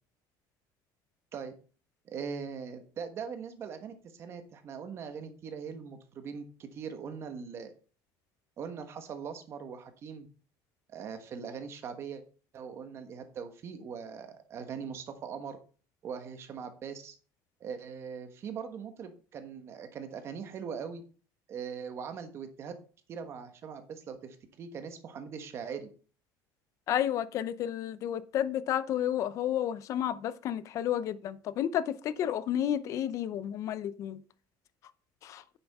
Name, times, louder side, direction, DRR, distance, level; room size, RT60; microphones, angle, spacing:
voice 1, 2.0-7.7 8.6-10.3 10.9-12.2 12.5-15.6 16.0-17.2 17.6-21.0 21.5-22.8 23.1-25.9, right 6 dB, 35° right, 1.3 m, -41 dB
voice 2, 26.9-34.2 35.2-35.4, left 10 dB, 40° left, 0.6 m, -31 dB
9.4 x 7.0 x 3.5 m
cardioid pair, 170°, 8 cm